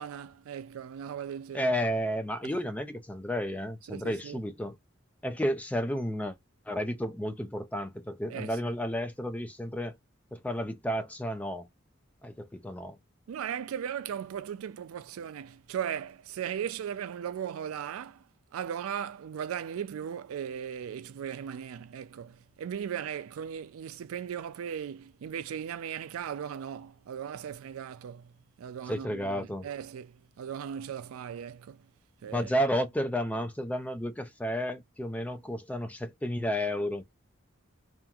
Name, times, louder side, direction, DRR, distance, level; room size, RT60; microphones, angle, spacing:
voice 1, 0.0-1.7 2.4-2.6 3.9-4.4 8.3-8.7 13.3-18.3 18.5-31.9 32.2-32.5, right 8 dB, 85° right, 0.3 m, -38 dB
voice 2, 1.5-4.7 5.2-6.4 6.7-10.0 10.3-11.7 12.2-13.0 28.9-29.7 32.3-37.0, equal, 5° left, 0.3 m, -32 dB
2.8 x 2.5 x 2.3 m
head